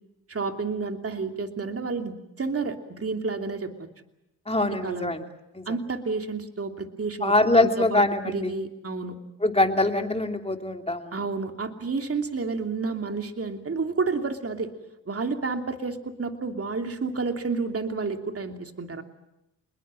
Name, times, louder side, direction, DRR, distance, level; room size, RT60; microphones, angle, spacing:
voice 1, 0.3-3.9 4.7-5.2 5.7-7.3 7.6-9.2 11.1-14.7 15.1-19.0, right 4 dB, 35° right, 5 dB, 2.9 m, -30 dB
voice 2, 4.5-5.2 5.5-5.7 7.2-8.6 9.4-11.1, left 2 dB, 15° left, 4 dB, 3.0 m, -23 dB
26.5 x 21.0 x 7.6 m, 0.88 s
supercardioid pair, 55°, 40 cm